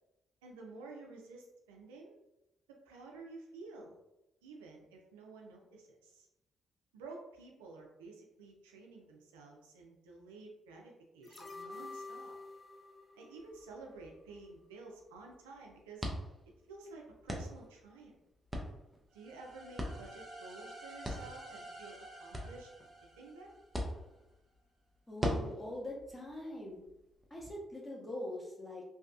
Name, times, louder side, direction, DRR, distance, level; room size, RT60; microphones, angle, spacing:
voice 1, 0.4-2.1 2.8-4.0 4.4-6.3 6.9-12.4 13.2-16.1 16.7-18.1 19.1-22.7 23.2-23.5, right 3 dB, 90° right, 0 dB, 0.4 m, -52 dB
sound 1, 11.2-14.4 14.7-14.8, left 3 dB, 30° left, 0.5 m, -49 dB
sound 2, 13.3-27.5, equal, 15° right, 0.6 m, -44 dB
sound 3, 19.1-24.0, right 1 dB, 55° right, 0.8 m, -52 dB
voice 2, 25.1-26.8 27.3-28.8, left 1 dB, 10° left, -3 dB, 1.0 m, -43 dB
2.7 x 2.2 x 2.3 m, 0.92 s
hypercardioid pair, 45°, 0 cm